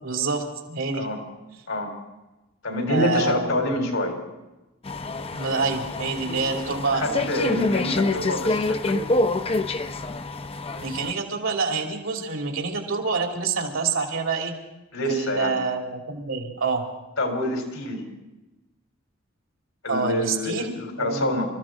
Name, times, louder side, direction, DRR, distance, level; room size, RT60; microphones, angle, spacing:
voice 1, 0.0-1.1 2.9-3.7 5.3-7.5 10.8-14.5 15.1-16.8 19.9-21.4, right 4 dB, 75° right, 1 dB, 2.8 m, -27 dB
voice 2, 2.6-4.2 6.3-9.1 14.9-15.6 17.2-18.0 19.8-21.5, left 1 dB, 85° left, 2 dB, 3.7 m, -27 dB
sound 1, 4.8-11.1, left 2 dB, 30° left, 0.6 m, -26 dB
26.0 x 14.5 x 3.8 m, 1.0 s
head